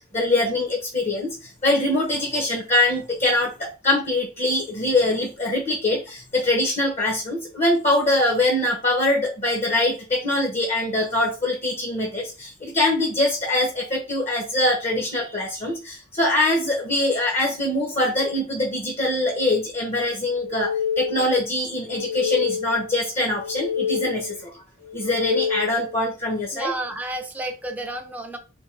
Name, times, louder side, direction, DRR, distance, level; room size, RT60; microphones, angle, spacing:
voice 1, 0.1-1.3 1.6-20.7 21.0-24.3 24.9-26.7, left 1 dB, 35° left, 0 dB, 0.8 m, -23 dB
sound 1, 20.3-21.4 21.8-22.9 23.3-24.4 24.8-26.0, left 7 dB, 80° left, 1.4 m, -28 dB
voice 2, 26.5-28.4, right 1 dB, 10° right, 3 dB, 0.5 m, -30 dB
3.4 x 2.7 x 3.2 m, 0.33 s
head